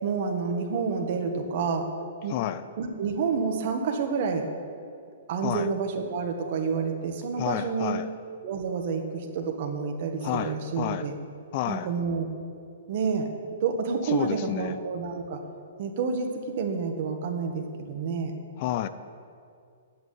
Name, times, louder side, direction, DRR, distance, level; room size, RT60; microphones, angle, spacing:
voice 1, 0.0-1.9 2.2-2.3 2.8-4.5 5.3-8.0 8.4-11.1 11.7-12.3 12.9-13.3 13.6-15.4 15.8-18.3, right 5 dB, 50° right, 4 dB, 1.7 m, -29 dB
voice 2, 2.3-2.6 5.4-5.7 7.4-8.1 10.2-11.1 11.5-11.9 14.1-14.8 18.6-18.9, left 12 dB, 40° left, 13 dB, 0.5 m, -30 dB
9.0 x 7.8 x 9.3 m, 2.3 s
hypercardioid pair, 150°, 0 cm